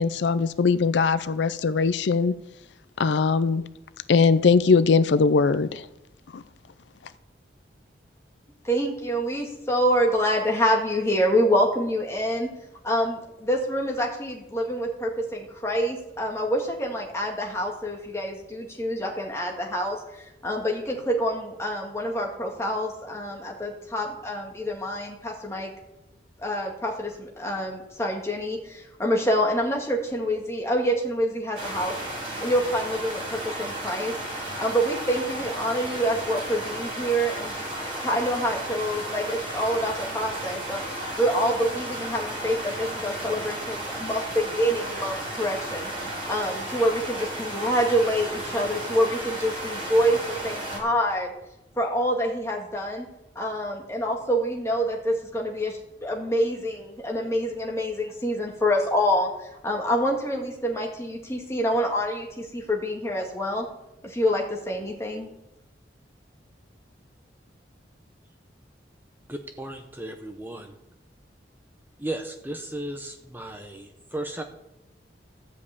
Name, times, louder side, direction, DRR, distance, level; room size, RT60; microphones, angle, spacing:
voice 1, 0.0-2.3 3.0-3.6 4.1-5.9 6.3-6.4, left 4 dB, 70° left, 14 dB, 0.4 m, -20 dB
voice 2, 8.6-12.5 12.8-25.7 26.4-31.9 32.4-34.2 34.6-51.3 51.8-53.1 53.4-63.7 64.0-65.3, equal, 15° left, -1 dB, 1.8 m, -26 dB
sound 1, 31.5-50.8, right 1 dB, 30° right, 3.9 m, -34 dB
voice 3, 69.3-70.8 72.0-74.4, right 1 dB, 10° right, 5 dB, 0.7 m, -35 dB
13.5 x 5.3 x 8.3 m, 0.92 s
head